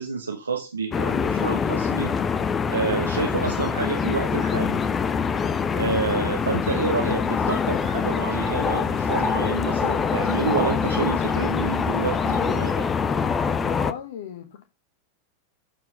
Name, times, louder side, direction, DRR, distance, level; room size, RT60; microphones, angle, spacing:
voice 1, 0.0-2.1 2.7-4.8 5.7-12.9, right 4 dB, 75° right, 1.2 m, -28 dB
sound 1, 0.9-13.9, left 6 dB, 20° left, 0.8 m, -24 dB
sound 2, 6.6-12.5, right 9 dB, 55° right, 1.3 m, -49 dB
voice 2, 13.6-14.6, left 9 dB, 55° left, 1.1 m, -37 dB
13.0 x 4.6 x 5.3 m
figure-of-eight pair, 90°, 0 cm